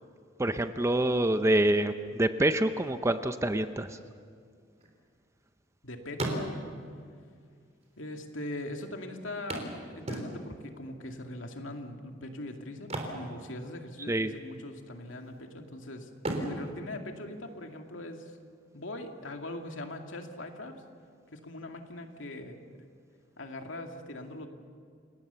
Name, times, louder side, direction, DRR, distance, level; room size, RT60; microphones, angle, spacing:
voice 1, 0.4-4.0 14.1-14.3, right 1 dB, 15° right, 9 dB, 0.7 m, -26 dB
sound 1, 4.5-5.8 6.1-6.9 7.8-7.9 8.1-8.2 9.5-10.7 12.7-14.1 14.3-14.6 15.1-15.7 16.1-17.9 19.9-20.0 20.4-20.5, right 1 dB, 35° right, 3.6 m, -37 dB
voice 2, 5.8-6.6 8.0-16.1 16.4-18.4 18.7-20.8 21.3-22.8 23.4-24.5, left 1 dB, 90° left, 3 dB, 2.3 m, -41 dB
28.5 x 18.5 x 6.9 m, 2.1 s
head